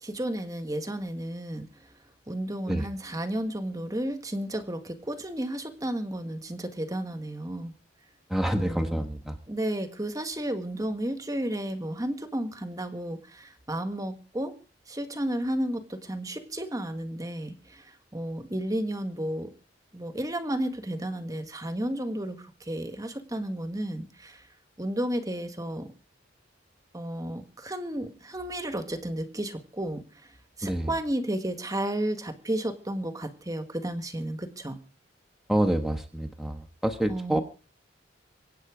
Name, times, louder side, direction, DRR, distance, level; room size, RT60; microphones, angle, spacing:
voice 1, 0.0-1.7 2.3-7.7 8.5-9.0 9.5-14.5 14.9-17.8 18.1-19.5 19.9-24.4 24.8-25.9 26.9-30.0 30.6-34.8 37.1-37.4, right 1 dB, 20° right, 8 dB, 1.6 m, -32 dB
voice 2, 8.3-9.3 30.6-30.9 35.5-37.4, right 1 dB, ahead, 5 dB, 1.3 m, -27 dB
24.5 x 9.1 x 5.0 m, 0.39 s
head